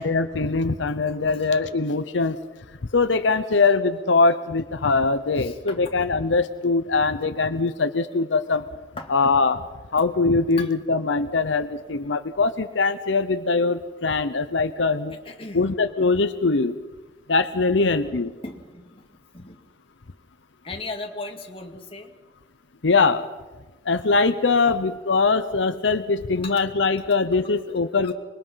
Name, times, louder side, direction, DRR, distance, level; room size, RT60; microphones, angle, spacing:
voice 1, 0.0-2.4 2.9-8.6 9.1-9.6 9.9-15.2 15.5-16.8 17.3-18.3 22.8-23.3 23.9-28.1, left 4 dB, 80° left, 10 dB, 0.8 m, -22 dB
voice 2, 5.4-5.9 9.0-9.1 10.6-10.7 15.3-15.7 17.8-18.1 18.4-19.0 19.3-19.6 20.6-22.1 24.7-24.8 26.4-26.5, left 3 dB, 30° left, 2 dB, 2.2 m, -37 dB
25.5 x 21.5 x 5.7 m, 1.2 s
head